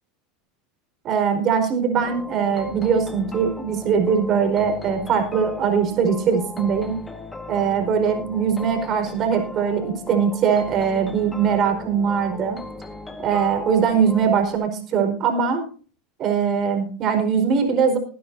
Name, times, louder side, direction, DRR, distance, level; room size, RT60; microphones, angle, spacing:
voice 1, 1.0-7.0 7.5-12.6 13.2-15.6 16.2-18.0, right 6 dB, 40° right, 5 dB, 4.5 m, -21 dB
sound 1, 2.0-14.6, left 2 dB, 15° left, 1.6 m, -37 dB
21.0 x 10.0 x 2.7 m, 0.39 s
supercardioid pair, 110°, 0 cm